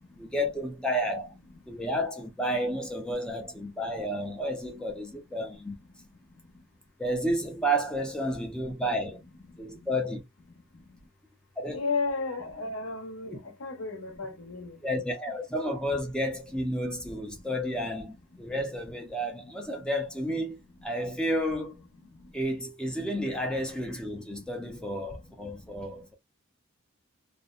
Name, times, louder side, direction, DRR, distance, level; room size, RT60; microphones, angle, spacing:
voice 1, 0.1-1.4 1.7-5.8 7.0-9.2 9.6-10.2 11.6-11.8 13.3-13.4 14.8-21.8 22.3-26.1, equal, 5° left, 0.5 m, -31 dB
voice 2, 11.7-15.1, left 4 dB, 75° left, 0.8 m, -33 dB
2.6 x 2.1 x 2.3 m
head